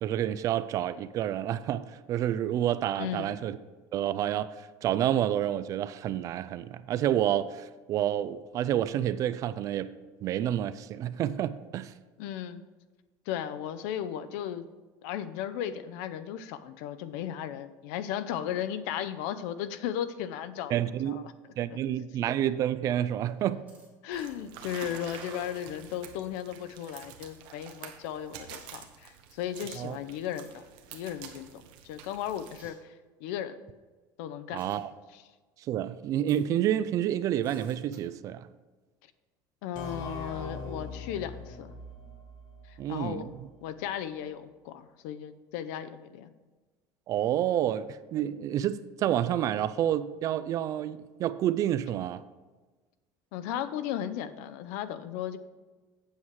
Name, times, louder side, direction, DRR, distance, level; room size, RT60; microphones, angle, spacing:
voice 1, 0.0-3.6 3.9-9.9 10.2-11.9 20.7-21.2 21.6-23.7 29.8-30.0 34.5-34.9 35.7-38.5 42.8-43.5 47.1-52.2, right 11 dB, 40° right, 0.4 m, -29 dB
voice 2, 3.0-3.4 12.2-12.6 13.3-14.7 15.0-20.7 21.1-21.3 21.7-22.1 24.0-30.6 30.9-32.9 33.2-33.6 34.2-34.6 35.1-35.2 39.6-41.7 42.7-43.3 43.6-46.3 53.3-55.4, left 10 dB, 80° left, 0.6 m, -36 dB
sound 1, 23.3-23.9 25.0-25.2 26.9-27.0 28.5-28.8 30.3-30.5 32.5-32.7 34.6-34.8 36.2-36.4 37.4-38.0, right 3 dB, 20° right, 3.0 m, -56 dB
sound 2, 24.1-32.6, right 9 dB, 65° right, 1.2 m, -47 dB
sound 3, 39.8-43.3, left 2 dB, 50° left, 1.6 m, -42 dB
8.5 x 7.4 x 4.7 m
cardioid pair, 150°, 9 cm